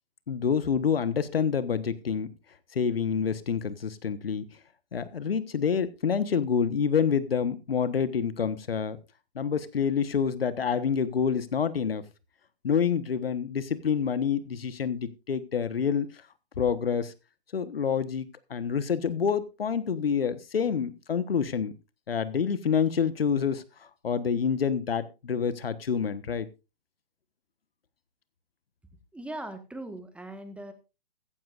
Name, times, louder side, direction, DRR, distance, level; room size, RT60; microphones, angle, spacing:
voice 1, 0.3-2.3 2.7-4.4 4.9-9.0 9.3-12.0 12.6-16.1 16.6-17.1 17.5-21.7 22.1-26.5, left 7 dB, 80° left, 14 dB, 1.3 m, -27 dB
voice 2, 29.1-30.7, right 1 dB, 5° right, 7 dB, 1.6 m, -39 dB
15.0 x 14.5 x 2.5 m, 0.29 s
hypercardioid pair, 125°, 29 cm